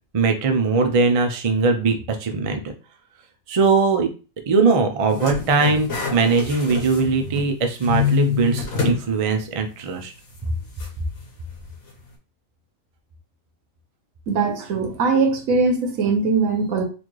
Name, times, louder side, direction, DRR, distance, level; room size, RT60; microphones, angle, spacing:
voice 1, 0.1-2.6 3.5-4.1 4.5-10.1 10.4-10.5, right 4 dB, 45° right, 0.4 m, -20 dB
sound 1, 5.1-7.5 7.8-9.0 9.4-9.5 10.8-10.9, left 7 dB, 85° left, 1.5 m, -25 dB
voice 2, 14.3-16.8, right 4 dB, 85° right, 1.3 m, -21 dB
4.2 x 2.5 x 3.1 m
omnidirectional pair, 1.4 m